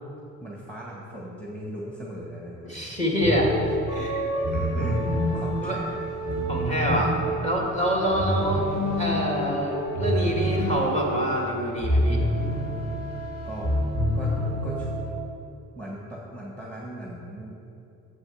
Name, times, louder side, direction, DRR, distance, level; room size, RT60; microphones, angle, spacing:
voice 1, 0.4-3.0 4.5-5.0 5.3-6.0 13.4-13.7 14.1-14.9 15.7-17.6, equal, 5° left, -4 dB, 1.9 m, -38 dB
voice 2, 2.6-3.5 3.9-4.2 5.6-5.8 6.5-7.1 7.4-8.6 9.0-12.2, equal, 20° left, -2 dB, 2.7 m, -26 dB
Calming Background Music Orchestra Loop, 3.2-15.1, equal, 50° left, 2.4 m, -27 dB
7.9 x 7.8 x 7.3 m, 2.8 s
cardioid pair, 90°, 30 cm